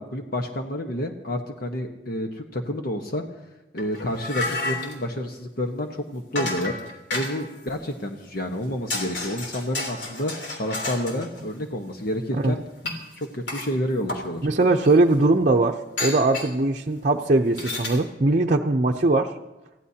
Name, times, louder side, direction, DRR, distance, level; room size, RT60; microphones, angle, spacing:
voice 1, 0.0-3.2 3.7-6.7 7.1-10.3 10.6-12.6 13.2-14.5, left 1 dB, 60° left, 3 dB, 1.3 m, -29 dB
sound 1, 3.8-5.0 6.3-7.5 8.5-8.6 8.9-11.4 12.8-13.7 14.1-14.2 14.8-14.9 16.0-16.5 17.5-18.0, left 2 dB, 80° left, 3.3 m, -31 dB
voice 2, 14.4-19.3, right 2 dB, 45° right, 1 dB, 0.7 m, -20 dB
28.5 x 15.5 x 2.9 m, 1.0 s
head